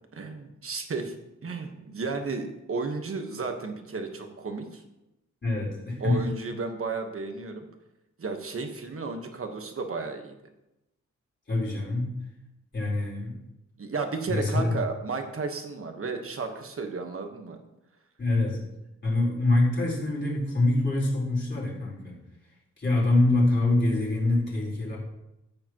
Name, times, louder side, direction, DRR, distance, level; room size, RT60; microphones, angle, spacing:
voice 1, 0.1-1.1 1.4-4.8 6.0-7.7 8.2-10.3 13.8-17.6, right 4 dB, 45° right, 5 dB, 1.3 m, -33 dB
voice 2, 5.4-6.2 11.5-12.1 12.7-13.4 14.3-14.7 18.2-18.6 19.0-22.2 22.8-25.0, left 2 dB, 35° left, -6 dB, 4.1 m, -25 dB
14.0 x 8.7 x 3.0 m, 0.91 s
wide cardioid pair, 145°, 30 cm